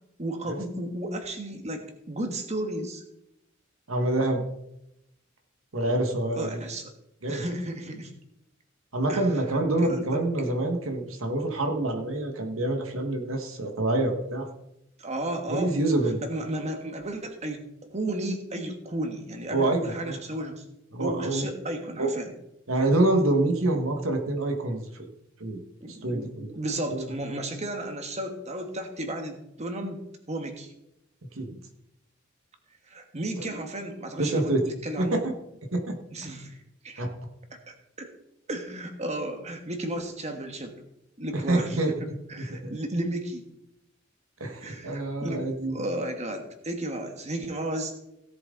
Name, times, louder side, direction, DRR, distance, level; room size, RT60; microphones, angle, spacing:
voice 1, 0.2-3.0 6.3-6.9 7.3-8.1 9.1-9.4 9.7-10.2 15.0-15.7 16.0-17.6 17.9-20.6 21.0-22.3 25.8-30.7 32.9-35.2 36.1-36.6 36.8-37.0 37.7-38.1 38.5-40.7 41.2-41.8 42.3-43.5 44.6-47.9, right 1 dB, 35° right, 5 dB, 1.6 m, -33 dB
voice 2, 3.9-4.4 5.7-6.6 7.2-7.4 8.9-14.5 15.5-16.2 19.5-20.2 20.9-21.5 22.0-22.1 22.7-24.8 25.4-25.6 25.9-26.5 26.9-27.1 31.4-31.6 33.5-33.6 34.2-34.6 35.0-35.3 35.7-36.3 37.0-37.1 41.3-41.9 42.4-42.7 44.4-45.9, right 2 dB, 80° right, 4 dB, 1.7 m, -26 dB
17.0 x 7.6 x 3.9 m, 0.84 s
head